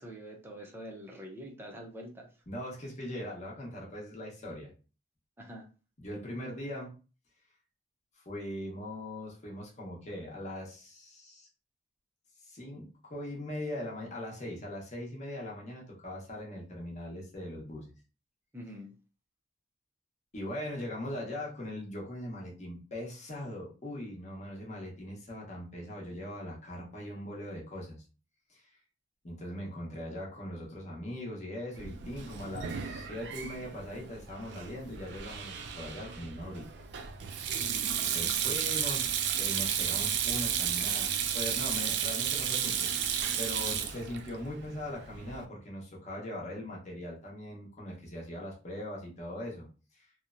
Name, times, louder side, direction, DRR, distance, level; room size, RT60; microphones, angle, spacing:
voice 1, 0.0-2.3 5.4-5.7 18.5-18.9 37.6-37.9, equal, 10° right, 0 dB, 0.6 m, -45 dB
voice 2, 2.5-4.7 6.0-6.9 8.2-11.5 12.4-17.9 20.3-28.0 28.5-28.7 29.2-36.7 37.2-37.5 38.1-39.1 39.4-49.7 49.9-50.1, left 1 dB, 40° left, -2 dB, 0.9 m, -40 dB
Sink (filling or washing), 31.8-45.4, right 8 dB, 65° right, 0.3 m, -33 dB
2.9 x 2.1 x 2.5 m, 0.35 s
head